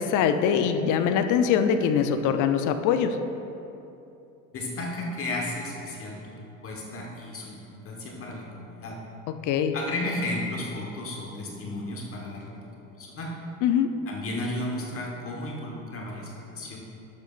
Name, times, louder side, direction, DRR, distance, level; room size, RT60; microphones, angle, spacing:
voice 1, 0.0-3.2 9.4-9.8 13.6-13.9, left 7 dB, 50° left, 8 dB, 0.7 m, -23 dB
voice 2, 4.5-7.6 7.8-9.0 9.7-12.7 13.0-13.3 14.1-16.8, left 2 dB, 35° left, -1 dB, 1.3 m, -34 dB
11.5 x 7.4 x 2.5 m, 2.9 s
hypercardioid pair, 80°, 40 cm